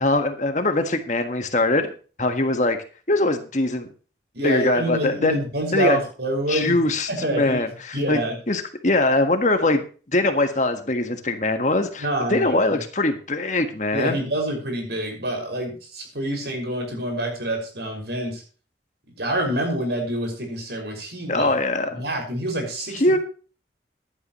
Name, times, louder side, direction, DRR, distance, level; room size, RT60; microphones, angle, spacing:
voice 1, 0.0-1.9 2.2-2.8 3.1-3.9 4.4-5.4 5.7-6.0 6.5-7.7 8.1-8.2 8.5-9.8 10.1-14.2 21.3-22.0 22.9-23.2, left 2 dB, 40° left, 6 dB, 1.6 m, -22 dB
voice 2, 4.3-6.8 7.1-7.6 7.9-8.4 12.0-12.8 13.9-18.4 19.2-21.5 21.9-23.0, right 1 dB, 65° right, 2 dB, 6.1 m, -27 dB
16.0 x 11.0 x 3.1 m, 0.37 s
head